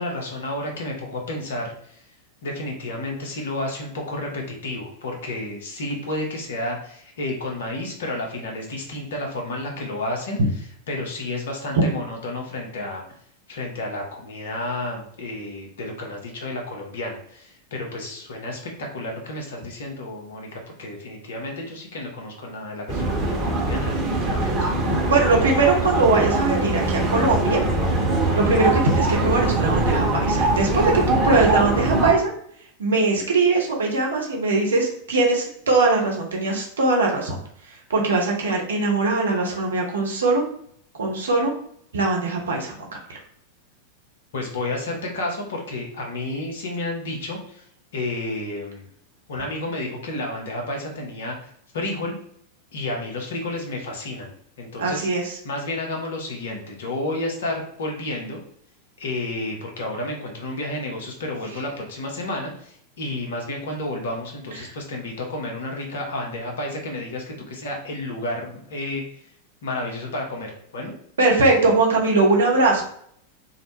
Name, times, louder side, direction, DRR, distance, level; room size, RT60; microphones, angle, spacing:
voice 1, 0.0-2.0 2.4-10.4 10.9-13.0 13.5-24.7 44.3-47.6 47.9-48.9 49.3-52.2 52.7-54.3 54.6-55.1 55.4-58.4 59.0-69.0 69.6-70.9, left 2 dB, 60° left, 1 dB, 0.7 m, -31 dB
sound 1, 22.9-32.1, right 2 dB, 20° right, 0.9 m, -22 dB
voice 2, 25.1-27.6 28.4-32.3 32.8-37.4 37.7-40.4 41.0-41.5 41.9-42.8 43.1-43.2 54.8-55.4 64.4-64.7 71.2-72.8, right 3 dB, 65° right, 0 dB, 0.7 m, -21 dB
2.4 x 2.1 x 3.0 m, 0.66 s
figure-of-eight pair, 90°, 0 cm